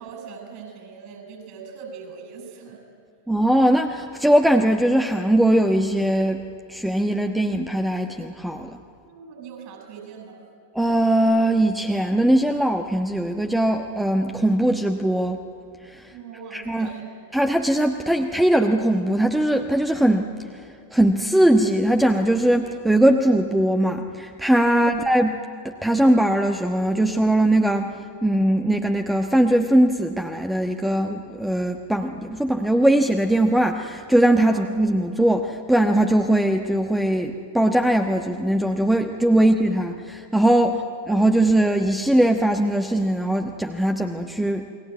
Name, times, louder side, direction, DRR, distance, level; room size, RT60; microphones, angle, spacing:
voice 1, 0.0-2.8 9.0-10.4 16.1-17.1 24.7-25.0 34.5-34.7 39.4-39.5 40.7-40.9, right 6 dB, 45° right, 3 dB, 7.7 m, -41 dB
voice 2, 3.3-6.4 6.7-8.8 10.7-15.4 15.8-16.1 16.5-16.9 17.3-20.3 20.5-25.4 25.6-28.0 28.2-40.8 41.1-44.7, right 1 dB, 5° right, 5 dB, 1.2 m, -20 dB
29.5 x 21.5 x 9.3 m, 2.3 s
figure-of-eight pair, 90°, 0 cm